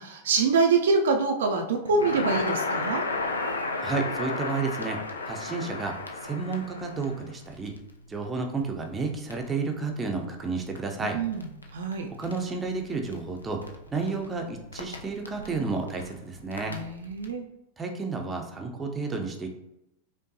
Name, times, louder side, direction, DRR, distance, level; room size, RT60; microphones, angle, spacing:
voice 1, 0.0-3.0 11.1-11.5 11.7-12.1 16.7-17.4, right 4 dB, 60° right, 3 dB, 0.4 m, -25 dB
Crackle, 1.9-17.3, left 3 dB, 80° left, 0.4 m, -36 dB
voice 2, 3.8-5.0 5.2-5.9 6.2-7.7 8.1-11.2 12.2-13.6 13.9-16.7 17.8-19.5, right 4 dB, 15° right, 2 dB, 0.6 m, -31 dB
5.1 x 2.2 x 2.7 m, 0.89 s
figure-of-eight pair, 90°, 0 cm